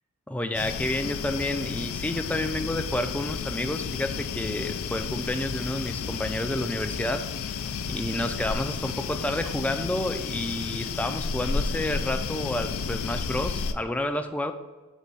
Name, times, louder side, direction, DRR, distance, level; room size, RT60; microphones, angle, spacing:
voice 1, 0.3-7.3 7.9-14.5, left 1 dB, 5° left, 6 dB, 0.3 m, -30 dB
sound 1, 0.5-13.7, left 5 dB, 75° left, 0.4 m, -32 dB
7.3 x 3.2 x 5.4 m, 1.3 s
head